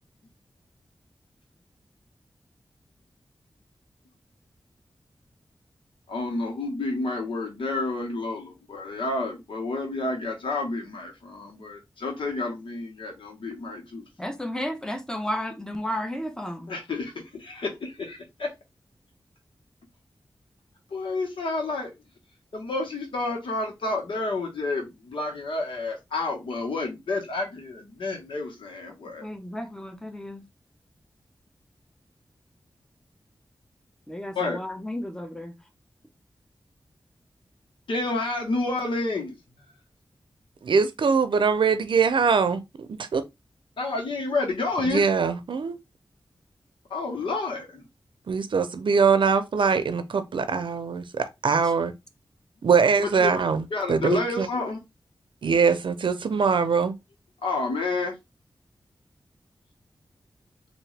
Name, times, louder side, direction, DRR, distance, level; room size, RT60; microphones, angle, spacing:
voice 1, 6.1-14.0 16.7-18.5 20.9-21.9 22.5-29.2 34.3-34.6 37.9-39.4 43.8-45.1 46.9-47.8 53.2-53.4 53.7-54.8 57.4-58.1, left 3 dB, 85° left, 1.2 m, -30 dB
voice 2, 14.2-16.7 29.2-30.4 34.1-35.5, left 1 dB, 10° left, 0.8 m, -33 dB
voice 3, 40.6-43.2 44.8-45.8 48.3-51.9 52.6-54.5 55.4-56.9, right 5 dB, 75° right, 0.5 m, -22 dB
3.6 x 2.6 x 3.2 m
cardioid pair, 60°, 8 cm